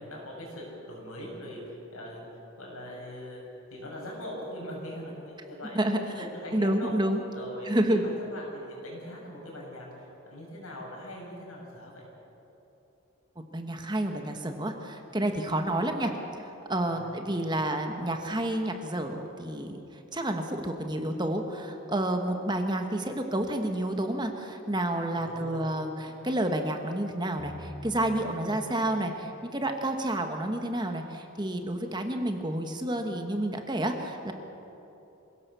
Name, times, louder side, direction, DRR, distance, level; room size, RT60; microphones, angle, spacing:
voice 1, 0.0-2.3 2.6-3.4 3.7-5.8 6.1-6.9 7.3-12.1 16.9-17.1 25.1-25.6, equal, 90° left, -2 dB, 7.1 m, -41 dB
voice 2, 5.7-7.2 7.6-8.0 13.5-16.1 16.4-19.8 20.1-34.3, right 1 dB, 20° right, 5 dB, 1.4 m, -30 dB
sound 1, 27.4-31.1, left 1 dB, 40° left, 4.0 m, -47 dB
26.0 x 17.5 x 6.9 m, 3.0 s
head